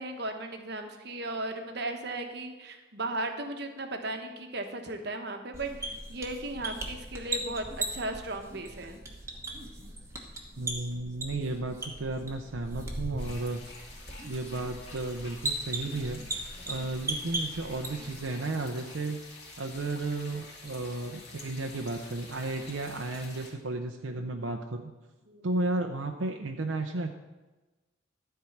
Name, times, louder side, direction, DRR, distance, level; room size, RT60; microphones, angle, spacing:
voice 1, 0.0-9.0 25.3-25.5, right 2 dB, 55° right, 5 dB, 1.1 m, -36 dB
sound 1, 5.5-18.3, right 2 dB, 15° right, 1.2 m, -38 dB
voice 2, 10.6-13.6 14.2-16.2 16.7-19.2 19.6-24.9 25.4-27.1, right 2 dB, 75° right, 3 dB, 0.7 m, -33 dB
sound 2, 13.2-23.5, left 3 dB, 55° left, 2.6 m, -48 dB
13.0 x 4.6 x 7.1 m, 1.2 s
head